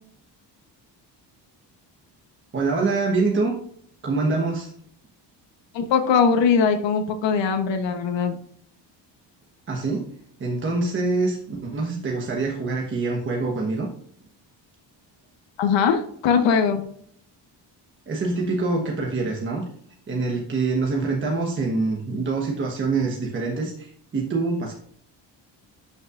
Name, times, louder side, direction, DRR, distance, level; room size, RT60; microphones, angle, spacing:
voice 1, 2.5-3.5 4.0-4.7 9.7-10.1 10.4-13.9 18.1-19.7 20.1-24.7, right 3 dB, 25° right, 0 dB, 1.2 m, -25 dB
voice 2, 5.7-8.4 15.6-16.8, left 6 dB, 85° left, 6 dB, 1.1 m, -21 dB
12.5 x 5.6 x 2.5 m, 0.63 s
cardioid pair, 175°, 43 cm